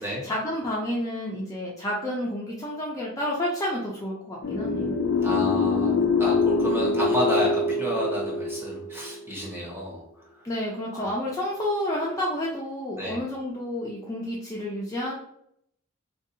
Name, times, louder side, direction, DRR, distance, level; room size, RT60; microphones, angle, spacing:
voice 1, 0.0-5.0 10.4-15.1, left 1 dB, 15° left, -5 dB, 0.5 m, -30 dB
sound 1, 4.4-9.5, left 3 dB, 70° left, 0.5 m, -25 dB
voice 2, 5.2-5.9 6.2-10.0 10.9-11.1 13.0-13.2, left 1 dB, 10° right, -3 dB, 0.9 m, -30 dB
3.9 x 2.7 x 2.6 m, 0.73 s
head